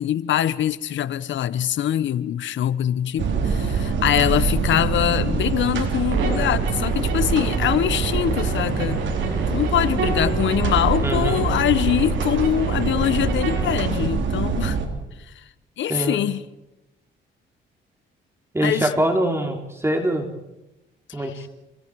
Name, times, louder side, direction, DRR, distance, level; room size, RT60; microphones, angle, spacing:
voice 1, 0.0-9.0 9.5-14.8 15.3-15.4 15.8-16.5 18.6-18.9 21.2-21.5, left 11 dB, 70° left, 1.1 m, -23 dB
sound 1, 3.2-14.9, right 5 dB, 70° right, 3.7 m, -24 dB
sound 2, 6.1-13.9, right 3 dB, 90° right, 8.0 m, -32 dB
voice 2, 11.0-11.4 15.9-16.2 18.5-20.3 21.1-21.5, right 1 dB, 15° right, 3.1 m, -23 dB
29.0 x 26.5 x 4.8 m
cardioid pair, 90°, 20 cm